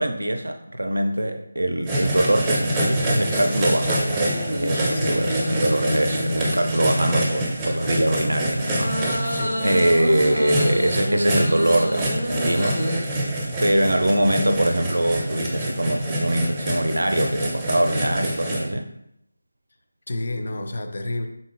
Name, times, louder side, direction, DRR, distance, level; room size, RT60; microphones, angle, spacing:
voice 1, 0.0-13.3 13.6-18.9, right 1 dB, 80° right, 6 dB, 0.4 m, -23 dB
sound 1, 1.9-18.6, right 1 dB, 15° right, 0.5 m, -26 dB
sound 2, 4.0-7.0 8.8-13.0, equal, 85° left, 0.6 m, -28 dB
voice 2, 4.9-5.3 9.3-9.7 20.1-21.3, left 2 dB, 55° left, 5 dB, 0.3 m, -30 dB
3.8 x 2.1 x 2.5 m, 0.77 s
figure-of-eight pair, 160°, 0 cm